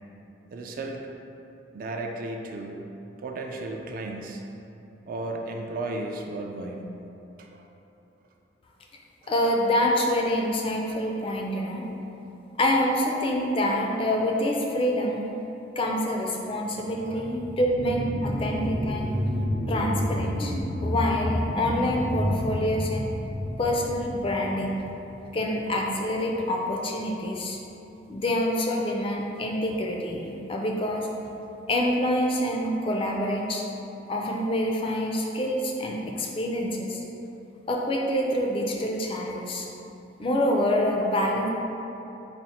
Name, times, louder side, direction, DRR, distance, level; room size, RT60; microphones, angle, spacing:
voice 1, 0.5-1.0 1.7-2.8 3.2-4.4 5.1-6.8 7.4-7.7 17.1-17.4, right 2 dB, 50° right, 2 dB, 0.3 m, -34 dB
voice 2, 9.3-11.8 12.6-15.2 15.8-19.1 19.7-20.5 20.8-23.1 23.6-24.8 25.3-27.6 28.1-31.1 31.7-33.6 34.1-37.0 37.7-39.7 40.2-41.5, left 1 dB, 30° left, 0 dB, 0.3 m, -26 dB
sound 1, 16.7-25.8 26.2-26.3, equal, 85° right, 0.9 m, -30 dB
4.1 x 2.1 x 4.2 m, 3.0 s
head